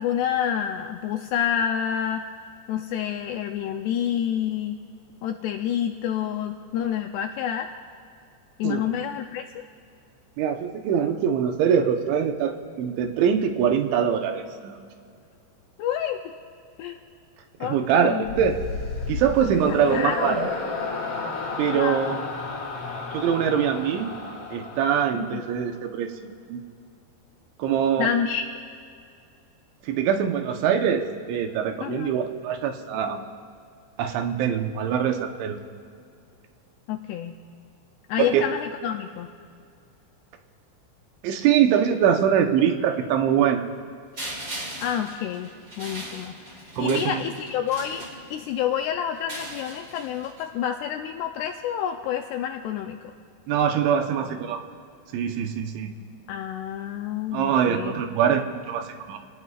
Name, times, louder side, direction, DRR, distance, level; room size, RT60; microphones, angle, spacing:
voice 1, 0.0-2.3 2.7-4.8 5.2-7.7 8.6-9.6 15.8-16.3 16.8-17.0 17.6-18.3 19.6-20.5 21.7-22.0 25.1-25.4 28.0-28.4 31.8-32.2 36.9-37.4 38.1-39.3 44.8-48.0 48.3-53.1 56.3-57.9, left 9 dB, 90° left, 4 dB, 2.4 m, -28 dB
voice 2, 10.4-14.7 17.6-18.6 19.1-20.5 21.6-22.2 23.1-24.1 24.5-26.1 26.5-26.6 27.6-28.1 29.8-33.2 34.0-35.6 38.2-38.5 41.2-43.7 46.8-47.3 53.5-54.6 55.1-55.9 57.3-59.2, right 8 dB, 80° right, 5 dB, 3.3 m, -23 dB
sound 1, 18.3-25.6, left 3 dB, 45° left, 2.0 m, -32 dB
sound 2, 44.2-48.6 49.1-50.4, right 1 dB, 30° right, 1.6 m, -39 dB
29.0 x 18.0 x 2.5 m, 2.3 s
omnidirectional pair, 5.3 m